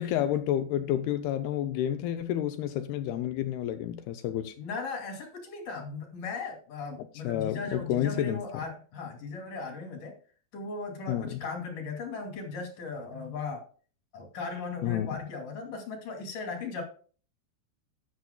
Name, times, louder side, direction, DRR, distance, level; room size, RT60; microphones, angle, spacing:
voice 1, 0.0-4.6 7.2-8.4 11.1-11.4 14.8-15.2, left 11 dB, 80° left, 2.4 m, -30 dB
voice 2, 4.6-10.1 10.5-13.6 14.1-16.8, left 4 dB, 55° left, 3.7 m, -37 dB
12.5 x 9.7 x 2.3 m
omnidirectional pair, 5.0 m